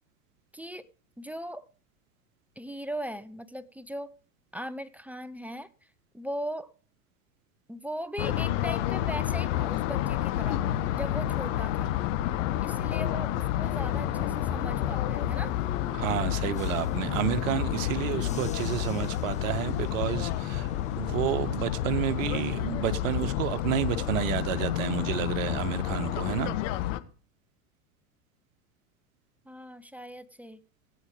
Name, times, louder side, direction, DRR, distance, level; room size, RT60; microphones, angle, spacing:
voice 1, 0.5-0.9 1.2-1.6 2.6-4.1 4.5-5.7 6.1-6.7 7.7-10.6 10.9-11.9 12.6-15.6 29.5-30.6, equal, 5° right, 0.5 m, -38 dB
sound 1, 8.2-27.0, left 13 dB, 55° left, 1.2 m, -30 dB
Bus / Engine, 13.6-21.6, left 4 dB, 15° left, 2.2 m, -43 dB
voice 2, 15.9-20.7 20.9-26.5, right 11 dB, 60° right, 1.4 m, -30 dB
16.0 x 8.9 x 4.9 m
hypercardioid pair, 90°, 44 cm